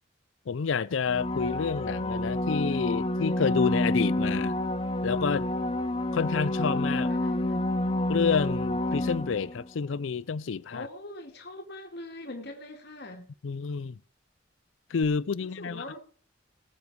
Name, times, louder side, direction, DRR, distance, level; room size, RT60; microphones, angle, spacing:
voice 1, 0.5-4.6 5.0-5.5 6.1-7.1 8.1-10.9 13.4-14.0 14.9-15.8, left 6 dB, 75° left, 0.5 m, -29 dB
sound 1, 1.1-9.7 15.0-15.1, left 1 dB, 25° left, 0.7 m, -29 dB
voice 2, 6.9-7.7 10.7-13.3 15.4-16.0, left 1 dB, 55° left, 2.0 m, -42 dB
19.0 x 7.4 x 4.7 m
head